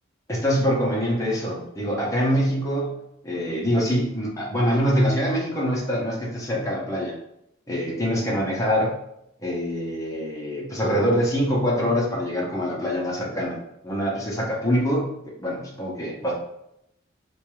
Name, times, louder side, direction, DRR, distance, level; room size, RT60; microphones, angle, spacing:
voice 1, 0.3-3.0 3.2-7.2 7.7-9.0 9.4-13.6 13.8-15.1 15.4-16.3, equal, 15° left, -4 dB, 0.7 m, -24 dB
2.6 x 2.3 x 3.0 m, 0.79 s
head